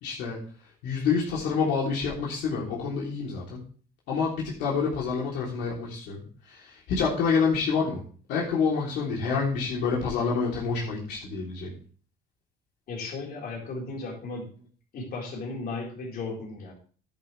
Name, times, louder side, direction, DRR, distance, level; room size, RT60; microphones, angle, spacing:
voice 1, 0.0-0.4 0.8-3.6 4.1-8.0 8.3-11.7, left 5 dB, 85° left, -5 dB, 3.4 m, -27 dB
voice 2, 12.9-14.5 14.9-16.7, left 3 dB, 60° left, -1 dB, 4.4 m, -35 dB
10.5 x 10.5 x 3.4 m, 0.41 s
cardioid pair, 110°, 17 cm